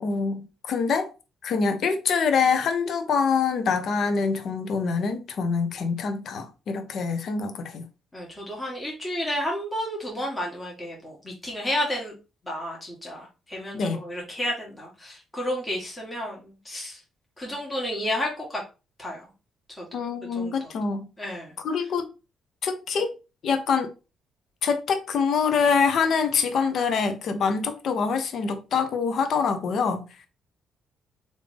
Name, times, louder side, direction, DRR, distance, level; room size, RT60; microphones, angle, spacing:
voice 1, 0.0-1.1 1.4-7.9 13.7-14.0 19.9-21.1 21.6-22.1 22.6-23.1 23.4-23.9 24.6-30.1, left 5 dB, 65° left, 0.6 m, -25 dB
voice 2, 8.1-12.1 12.4-17.0 17.4-18.6 19.0-19.3 19.8-19.9 20.3-20.7 21.2-21.5, equal, 15° left, 1.4 m, -31 dB
3.3 x 2.6 x 3.4 m
cardioid pair, 90°, 0 cm